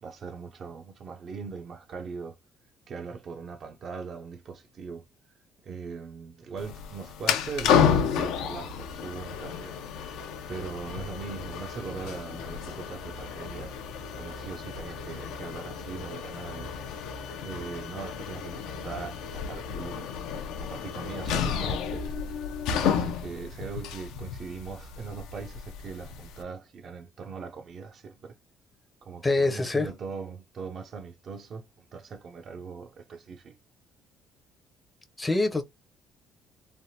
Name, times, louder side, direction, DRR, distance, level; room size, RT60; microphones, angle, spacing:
voice 1, 0.0-2.4 2.9-5.0 5.6-9.8 10.5-13.7 14.1-16.7 17.4-20.1 20.6-22.0 22.7-28.3 29.0-33.6, right 5 dB, 50° right, 0.5 m, -40 dB
sound 1, 6.6-26.4, left 7 dB, 85° left, 0.5 m, -31 dB
voice 2, 29.2-29.9 35.2-35.6, left 2 dB, 15° left, 0.5 m, -25 dB
3.3 x 2.1 x 2.7 m
cardioid pair, 95°, 0 cm